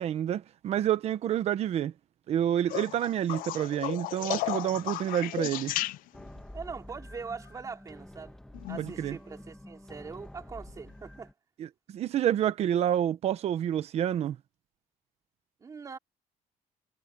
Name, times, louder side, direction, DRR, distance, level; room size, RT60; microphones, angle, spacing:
voice 1, 0.0-1.9 2.3-5.7 8.8-9.2 11.6-14.4, right 10 dB, 45° right, 1.2 m, -28 dB
sound 1, 2.7-6.4 8.5-9.0 10.7-10.8, left 17 dB, 75° left, 0.6 m, -34 dB
sound 2, 6.1-11.3, left 1 dB, 5° left, 2.0 m, -48 dB
voice 2, 6.5-8.4 8.7-11.3 15.6-16.0, right 5 dB, 25° right, 3.2 m, -42 dB
cardioid pair, 180°, 15 cm